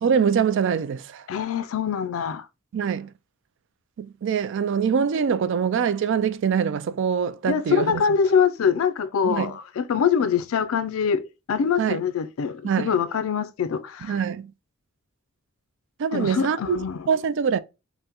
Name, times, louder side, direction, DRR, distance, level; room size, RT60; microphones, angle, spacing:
voice 1, 0.0-1.3 2.7-3.1 4.0-8.0 9.2-9.5 11.8-12.0 12.6-12.9 14.0-14.5 16.0-16.8 17.1-17.6, right 7 dB, 65° right, 0.3 m, -24 dB
voice 2, 1.3-2.5 7.5-14.2 16.1-17.1, left 7 dB, 85° left, 0.4 m, -24 dB
5.5 x 2.1 x 2.9 m
head